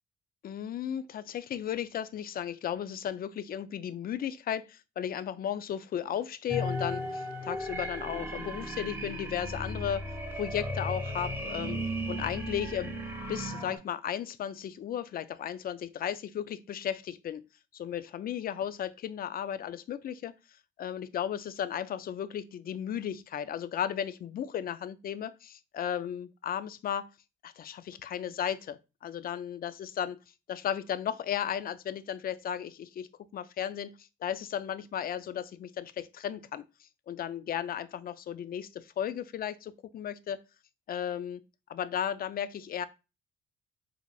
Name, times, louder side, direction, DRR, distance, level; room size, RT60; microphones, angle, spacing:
voice 1, 0.4-11.8 12.1-12.9 13.3-17.5 17.7-20.3 20.8-27.1 27.4-30.2 30.5-40.4 40.9-41.4 41.7-42.9, left 9 dB, 50° left, 0.4 m, -35 dB
sound 1, 6.5-13.8, equal, 10° right, 1.2 m, -35 dB
4.8 x 3.3 x 2.3 m
cardioid pair, 90°, 20 cm